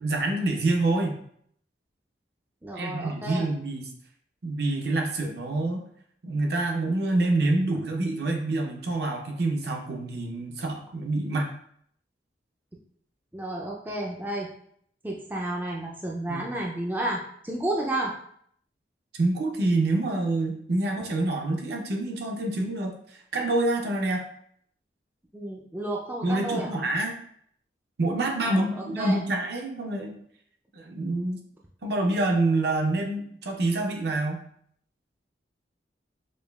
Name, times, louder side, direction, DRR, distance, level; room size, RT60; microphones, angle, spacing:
voice 1, 0.0-1.2 2.8-3.8 4.4-5.8 6.2-11.5 16.3-16.4 19.1-24.2 26.2-27.1 28.0-30.1 30.7-31.4 31.8-34.4, right 2 dB, 60° right, 2 dB, 0.6 m, -27 dB
voice 2, 2.6-3.5 13.3-14.5 15.0-18.2 25.3-26.8 28.5-29.2, right 1 dB, 10° right, -2 dB, 0.3 m, -31 dB
5.1 x 2.3 x 2.3 m, 0.65 s
head